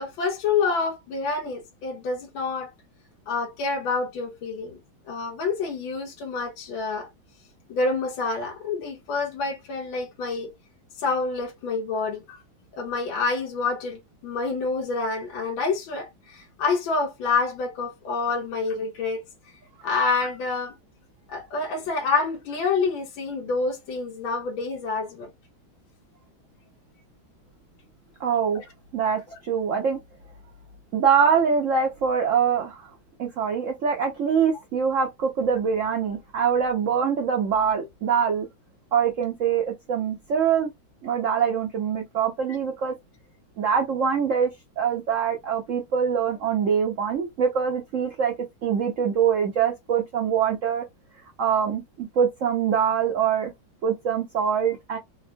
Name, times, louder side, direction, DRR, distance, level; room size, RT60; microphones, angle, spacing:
voice 1, 0.0-2.7 3.3-4.8 5.1-7.1 7.7-10.5 11.0-12.4 12.8-19.2 19.8-20.7 21.3-25.3 28.6-28.7, left 4 dB, 80° left, 1.5 m, -27 dB
voice 2, 28.2-28.6 28.9-30.0 30.9-32.9 33.2-38.5 38.9-40.7 41.0-42.9 43.6-44.5 44.8-48.3 48.6-50.8 51.4-53.5 53.8-55.0, right 7 dB, 90° right, 0.6 m, -24 dB
3.6 x 2.2 x 2.5 m
omnidirectional pair, 2.2 m